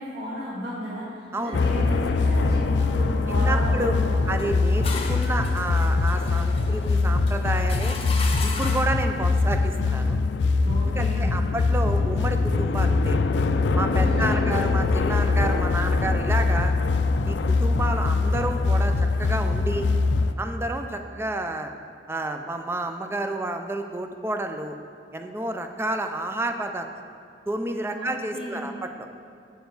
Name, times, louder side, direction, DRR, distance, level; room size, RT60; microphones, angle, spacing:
voice 1, 0.0-4.2 10.6-11.4 13.9-14.6 27.9-28.7, equal, 80° right, -10 dB, 1.9 m, -34 dB
sound 1, 1.5-20.3, left 3 dB, 80° left, 0.4 m, -23 dB
voice 2, 3.3-3.9 4.3-8.0 8.4-10.2 11.0-13.2 13.7-16.7 17.3-19.9 20.4-21.7 22.1-24.8 25.1-26.9 27.5-29.1, right 2 dB, 15° right, 6 dB, 0.4 m, -30 dB
sound 2, 4.4-9.1, left 4 dB, 35° left, 0.7 m, -36 dB
8.1 x 6.7 x 3.9 m, 2.4 s
head